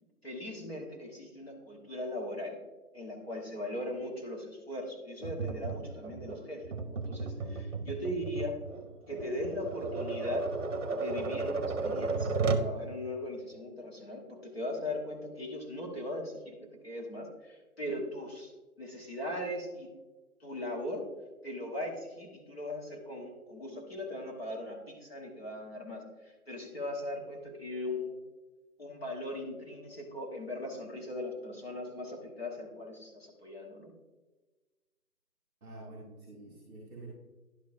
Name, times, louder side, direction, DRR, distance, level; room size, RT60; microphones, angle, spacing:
voice 1, 0.2-2.6 2.9-8.6 9.1-10.5 11.0-18.5 18.8-19.9 20.4-21.1 21.4-28.2 28.8-33.9, left 1 dB, 40° left, -1 dB, 1.4 m, -39 dB
Tap, 5.2-12.7, right 4 dB, 55° right, 0.8 m, -34 dB
voice 2, 35.6-37.1, right 2 dB, ahead, -15 dB, 1.3 m, -48 dB
11.0 x 5.3 x 2.6 m, 1.2 s
figure-of-eight pair, 175°, 45 cm